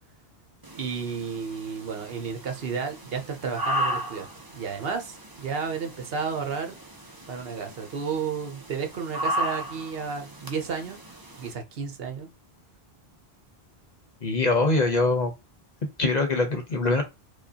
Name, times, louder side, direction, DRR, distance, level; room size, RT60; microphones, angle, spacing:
sound 1, 0.6-11.5, equal, 25° right, 0.7 m, -35 dB
voice 1, 0.8-4.3 4.5-6.8 7.3-11.0 11.4-12.3, right 6 dB, 70° right, 1.0 m, -32 dB
voice 2, 14.2-15.3 16.0-17.0, left 3 dB, 45° left, 0.9 m, -23 dB
4.7 x 2.3 x 2.7 m
omnidirectional pair, 1.1 m